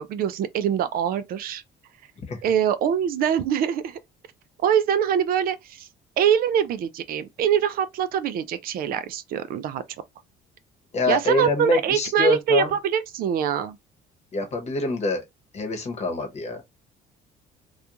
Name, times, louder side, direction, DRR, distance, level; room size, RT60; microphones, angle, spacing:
voice 1, 0.0-1.6 2.4-4.0 4.6-5.9 6.2-9.8 11.1-13.8, right 9 dB, 60° right, 0.4 m, -24 dB
voice 2, 10.9-12.7 14.3-15.2 15.5-16.6, left 3 dB, 40° left, 0.9 m, -25 dB
2.4 x 2.2 x 2.9 m
cardioid pair, 110°, 17 cm